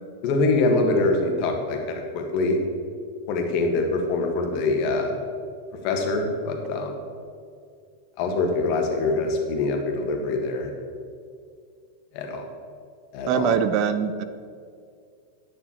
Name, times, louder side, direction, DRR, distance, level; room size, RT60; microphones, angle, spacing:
voice 1, 0.2-2.6 3.3-5.1 5.8-7.0 8.2-10.7 12.1-12.5 13.1-13.5, left 3 dB, 45° left, 3 dB, 1.8 m, -24 dB
voice 2, 13.3-14.2, right 8 dB, 40° right, 11 dB, 0.5 m, -23 dB
10.0 x 6.6 x 7.3 m, 2.2 s
figure-of-eight pair, 90°, 0 cm